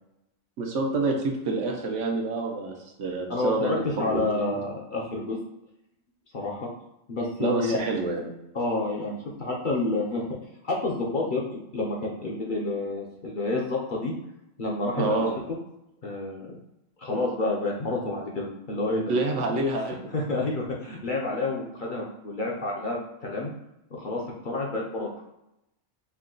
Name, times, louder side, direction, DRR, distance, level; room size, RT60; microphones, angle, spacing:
voice 1, 0.6-4.6 7.4-8.3 15.0-15.3 19.1-20.1, right 2 dB, 70° right, 2 dB, 1.0 m, -28 dB
voice 2, 3.3-5.4 6.3-6.7 7.1-7.9 8.5-10.2 10.6-14.1 14.6-15.0 16.0-16.6 17.0-19.0 20.1-23.5 23.9-25.1, left 2 dB, 50° left, -2 dB, 0.7 m, -29 dB
4.7 x 2.2 x 3.7 m, 0.87 s
omnidirectional pair, 1.3 m